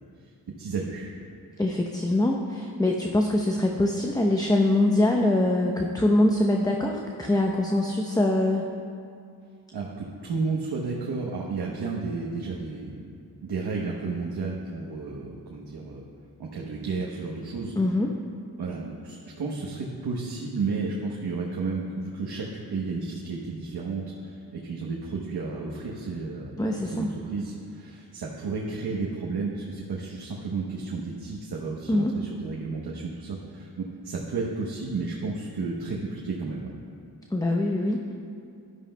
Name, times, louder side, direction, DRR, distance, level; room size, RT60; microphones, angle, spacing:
voice 1, 0.6-1.1 9.7-13.1 13.4-16.0 16.4-17.7 18.6-36.7, right 4 dB, 80° right, -2 dB, 1.0 m, -32 dB
voice 2, 1.6-8.7 17.8-18.1 26.6-27.1 31.9-32.1 37.3-38.1, left 1 dB, 10° left, 1 dB, 0.8 m, -23 dB
13.0 x 11.5 x 2.2 m, 2.4 s
cardioid pair, 50°, 38 cm